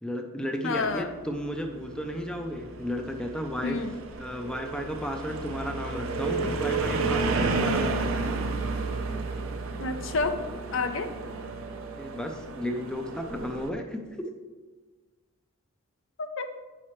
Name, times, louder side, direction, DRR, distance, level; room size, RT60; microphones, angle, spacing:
voice 1, 0.0-3.8 4.2-8.3 12.0-14.3, equal, 5° left, 3 dB, 0.5 m, -34 dB
voice 2, 0.6-1.1 3.6-3.9 9.8-10.4 10.7-11.1 16.2-16.6, left 3 dB, 60° left, 8 dB, 0.5 m, -29 dB
sound 1, 0.8-13.7, right 3 dB, 70° right, 0.7 m, -32 dB
8.7 x 5.8 x 3.1 m, 1.3 s
head